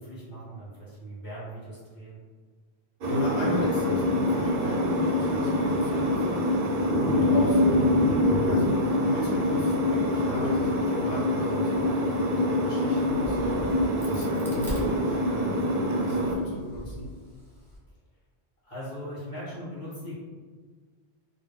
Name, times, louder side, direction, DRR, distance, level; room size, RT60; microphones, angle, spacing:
voice 1, 0.0-2.2 18.6-20.2, equal, 35° left, -11 dB, 0.8 m, -39 dB
voice 2, 3.0-6.4 7.1-7.9 8.4-11.9 12.4-13.6 14.0-17.1, left 1 dB, 90° left, -5 dB, 0.9 m, -34 dB
sound 1, 3.0-16.3, left 1 dB, 65° right, 0.7 m, -25 dB
Crack, 13.1-15.6 16.1-17.8, equal, 5° left, 0.5 m, -40 dB
2.2 x 2.0 x 3.5 m, 1.5 s
omnidirectional pair, 1.1 m